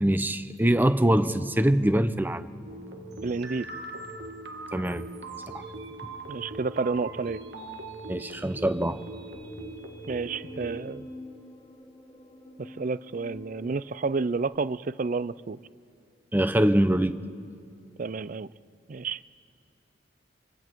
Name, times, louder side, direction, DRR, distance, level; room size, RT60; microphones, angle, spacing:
voice 1, 0.0-2.5 4.7-5.0 5.5-5.6 6.0-6.1 8.1-9.0 16.3-17.2, right 1 dB, 10° right, 0.7 m, -23 dB
sound 1, 2.6-5.8 8.3-14.4, left 1 dB, 20° left, 3.6 m, -48 dB
sound 2, 2.7-10.8, right 2 dB, 65° right, 1.8 m, -41 dB
voice 2, 3.2-3.7 6.3-7.4 10.1-11.1 12.6-15.6 18.0-18.5 18.9-19.2, right 4 dB, 45° right, 0.5 m, -30 dB
28.5 x 24.5 x 4.6 m
head